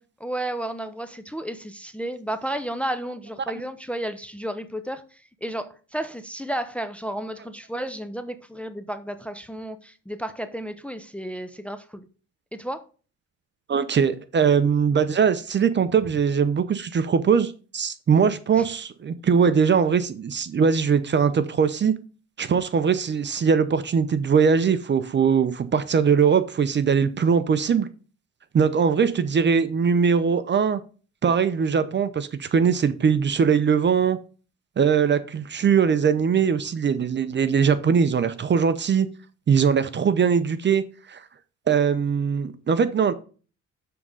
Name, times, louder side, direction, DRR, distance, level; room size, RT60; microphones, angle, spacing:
voice 1, 0.2-12.1 12.5-12.8 18.6-18.7, right 1 dB, 5° left, 0.6 m, -32 dB
voice 2, 13.7-21.9 22.4-27.9 28.5-30.8 31.2-34.2 34.8-39.1 39.5-40.8 41.1-41.2 41.7-43.1, right 6 dB, 35° right, 0.6 m, -21 dB
6.9 x 3.7 x 5.4 m
cardioid pair, 90°, 30 cm